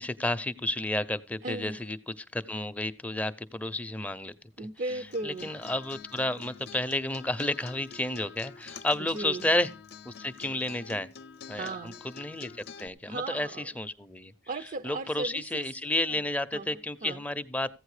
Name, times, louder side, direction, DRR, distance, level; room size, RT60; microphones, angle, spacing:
voice 1, 0.0-4.3 5.2-9.7 10.1-11.1 11.5-14.3 14.8-17.7, left 1 dB, 10° left, 0.6 m, -31 dB
voice 2, 1.4-1.8 4.6-5.5 9.1-9.5 11.5-12.0 13.1-13.7 14.5-15.8 16.1-16.2 16.5-17.2, right 3 dB, 45° right, 0.5 m, -37 dB
Acoustic guitar, 4.9-12.9, left 6 dB, 55° left, 0.7 m, -47 dB
15.5 x 8.9 x 4.9 m
head